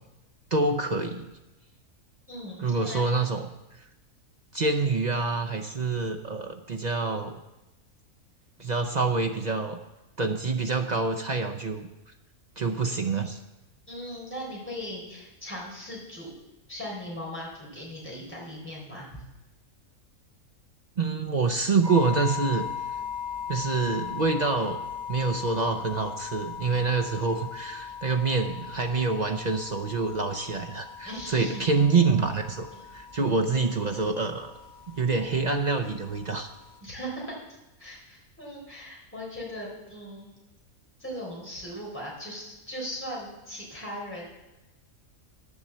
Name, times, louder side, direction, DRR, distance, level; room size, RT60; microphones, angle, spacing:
voice 1, 0.5-1.3 2.6-3.5 4.5-7.4 8.6-9.8 10.2-11.9 12.6-13.4 21.0-22.7 23.5-24.8 25.1-32.7 32.9-34.5 34.9-36.5, right 4 dB, 45° right, 3 dB, 0.5 m, -26 dB
voice 2, 2.3-3.1 13.9-16.3 16.7-19.1 28.6-28.7 31.0-31.6 32.7-32.8 36.8-37.3 37.8-40.3 41.0-44.3, equal, 10° left, -4 dB, 3.9 m, -38 dB
sound 1, 21.8-36.8, left 7 dB, 30° right, 1.3 m, -39 dB
10.0 x 7.2 x 7.3 m, 1.0 s
omnidirectional pair, 1.5 m